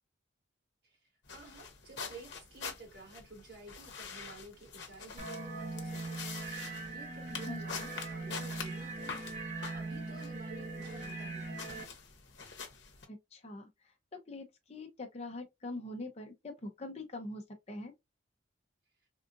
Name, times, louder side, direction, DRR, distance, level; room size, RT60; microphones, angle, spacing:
sound 1, 1.2-13.0, left 5 dB, 60° left, 0.9 m, -46 dB
voice 1, 1.3-11.8, right 3 dB, 50° right, 1.6 m, -52 dB
sound 2, 5.2-11.8, right 3 dB, 35° right, 1.1 m, -41 dB
voice 2, 7.5-7.9 13.1-13.7 14.3-17.9, left 2 dB, 35° left, 0.6 m, -43 dB
3.6 x 2.5 x 2.5 m
head